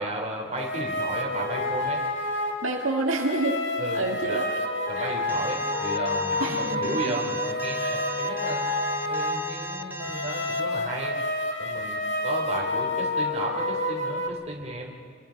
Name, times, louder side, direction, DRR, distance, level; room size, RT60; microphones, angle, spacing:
voice 1, 0.0-2.0 3.8-4.4 4.9-8.7 9.1-11.2 11.6-14.9, right 2 dB, 35° right, -1 dB, 3.6 m, -34 dB
sound 1, 0.6-14.3, left 2 dB, 65° left, 2.0 m, -29 dB
voice 2, 2.6-3.6 3.9-4.4 5.0-5.1 6.4-7.0 7.8-8.0, right 2 dB, 80° right, 1 dB, 2.0 m, -28 dB
Alarm, 5.3-10.6, right 1 dB, 10° right, 1.0 m, -38 dB
29.5 x 22.0 x 5.3 m, 2.3 s
head